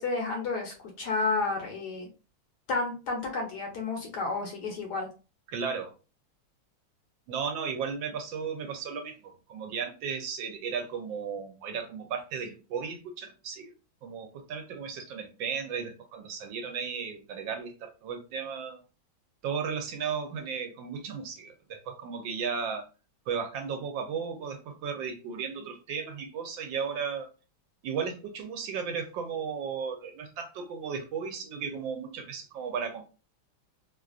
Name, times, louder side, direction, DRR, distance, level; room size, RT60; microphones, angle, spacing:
voice 1, 0.0-2.1 2.7-5.1, left 3 dB, 65° left, 1.1 m, -31 dB
voice 2, 5.5-5.9 7.3-13.7 14.0-18.8 19.4-22.9 23.3-27.3 27.8-33.1, right 6 dB, 75° right, 1.3 m, -35 dB
3.2 x 2.4 x 2.4 m
omnidirectional pair, 2.2 m